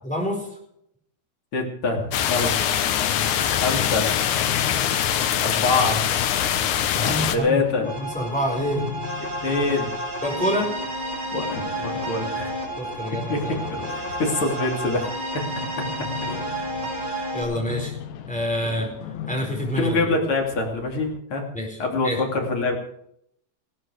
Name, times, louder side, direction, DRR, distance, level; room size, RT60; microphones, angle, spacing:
voice 1, 0.0-0.5 7.0-8.8 10.2-10.7 12.8-13.6 16.3-16.4 17.3-17.9 18.2-18.9 19.3-19.9 21.5-22.2, equal, ahead, 0 dB, 4.3 m, -27 dB
voice 2, 1.5-2.6 3.5-4.1 5.4-6.1 7.3-7.9 9.4-9.9 11.3-12.5 13.3-15.1 15.3-15.4 19.8-21.4 21.8-22.8, left 3 dB, 40° left, 1 dB, 3.3 m, -25 dB
sound 1, 1.9-21.2, left 8 dB, 85° left, 3.2 m, -39 dB
sound 2, 2.1-7.4, left 9 dB, 70° left, 2.3 m, -23 dB
sound 3, 7.8-17.4, right 1 dB, 15° right, 3.7 m, -31 dB
16.5 x 13.5 x 4.9 m, 0.73 s
omnidirectional pair, 4.1 m